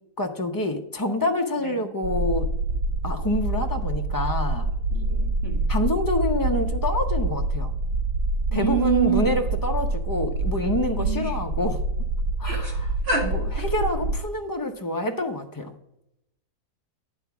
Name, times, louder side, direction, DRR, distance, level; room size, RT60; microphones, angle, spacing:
voice 1, 0.2-2.5 3.0-4.7 5.7-7.7 8.5-11.8 12.4-12.8 13.2-15.7, left 1 dB, 25° left, 4 dB, 0.5 m, -27 dB
sound 1, 2.0-14.2, right 2 dB, 85° right, 1.2 m, -26 dB
voice 2, 4.9-5.6 8.5-9.3 11.0-11.3 12.4-12.7 13.0-13.3 13.6-13.7, right 5 dB, 45° right, -1 dB, 2.3 m, -27 dB
9.8 x 3.6 x 7.1 m, 0.83 s
omnidirectional pair, 1.5 m